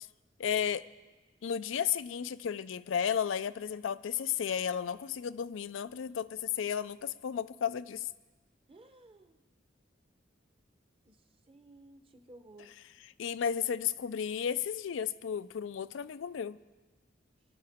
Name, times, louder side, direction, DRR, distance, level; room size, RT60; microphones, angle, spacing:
voice 1, 0.4-0.8 1.4-8.1 13.2-16.6, left 8 dB, 90° left, 14 dB, 0.4 m, -33 dB
voice 2, 8.7-9.4 11.1-12.7, right 2 dB, 30° right, 7 dB, 0.9 m, -56 dB
23.0 x 11.5 x 3.6 m, 1.2 s
head